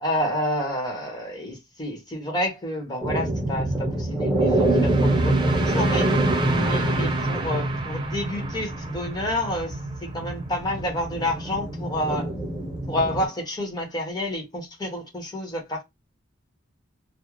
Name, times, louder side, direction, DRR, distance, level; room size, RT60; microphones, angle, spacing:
voice 1, 0.0-5.3 5.6-6.1 6.4-12.3 12.9-15.8, left 1 dB, 20° left, 0.9 m, -29 dB
sound 1, 3.0-13.3, right 1 dB, 5° right, 1.0 m, -25 dB
sound 2, 4.5-10.4, right 4 dB, 25° right, 0.4 m, -33 dB
2.4 x 2.0 x 3.1 m
head